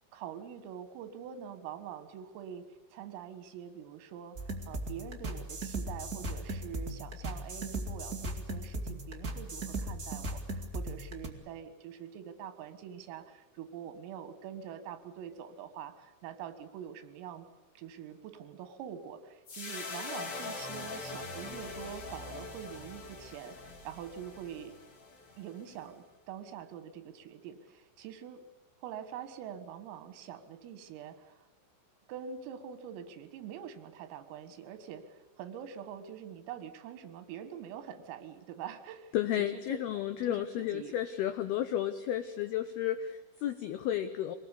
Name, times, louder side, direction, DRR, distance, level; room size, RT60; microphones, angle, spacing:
voice 1, 0.1-4.4 4.7-17.5 17.8-24.8 25.4-28.4 28.8-31.5 32.1-39.8 40.2-41.0, right 9 dB, 85° right, 11 dB, 4.2 m, -45 dB
sound 1, 4.3-11.3, right 1 dB, 55° right, 0.9 m, -38 dB
sound 2, 19.5-25.9, left 3 dB, 35° left, 3.0 m, -43 dB
voice 2, 39.1-44.4, left 11 dB, 90° left, 9 dB, 2.2 m, -32 dB
25.0 x 20.0 x 8.4 m, 1.2 s
omnidirectional pair, 5.9 m